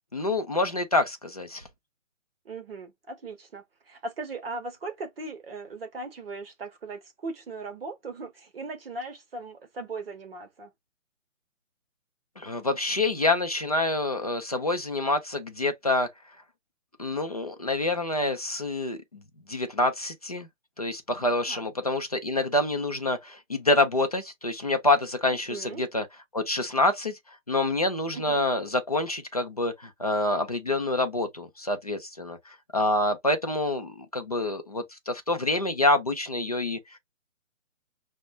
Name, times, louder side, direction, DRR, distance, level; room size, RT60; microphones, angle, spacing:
voice 1, 0.1-1.6 12.4-16.1 17.0-19.2 19.5-20.5 20.8-26.1 26.3-27.2 27.5-36.8, left 2 dB, 30° left, 0.4 m, -27 dB
voice 2, 2.4-10.7 21.5-21.6 25.3-25.8 28.1-28.4, right 3 dB, 45° right, 0.9 m, -38 dB
5.7 x 2.1 x 2.2 m
hypercardioid pair, 155°, 40 cm